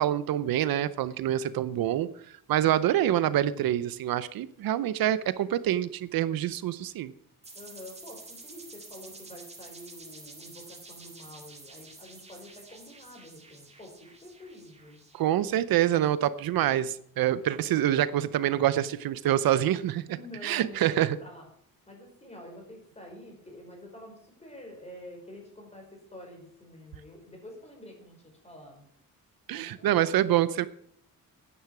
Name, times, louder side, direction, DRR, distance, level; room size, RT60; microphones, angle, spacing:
voice 1, 0.0-2.1 2.5-7.1 15.1-20.0 20.4-21.2 29.5-30.7, right 12 dB, 75° right, 16 dB, 0.7 m, -26 dB
sound 1, 7.4-16.0, right 3 dB, 20° right, 2.0 m, -49 dB
voice 2, 7.5-15.0 15.9-16.0 17.4-17.6 20.1-21.5 21.9-28.9 29.5-30.2, left 1 dB, 20° left, 1 dB, 5.3 m, -48 dB
11.5 x 10.0 x 6.1 m, 0.64 s
cardioid pair, 140°, 36 cm